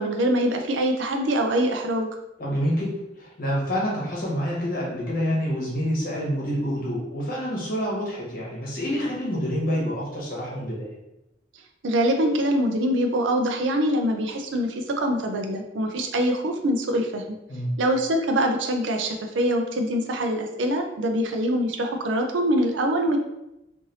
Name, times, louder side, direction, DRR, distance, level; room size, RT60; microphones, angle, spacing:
voice 1, 0.0-2.1 11.8-17.4 17.8-23.2, equal, 85° right, 4 dB, 0.5 m, -24 dB
voice 2, 2.4-10.9 17.5-17.8, equal, 50° left, -5 dB, 1.1 m, -27 dB
3.2 x 2.5 x 2.7 m, 0.90 s
head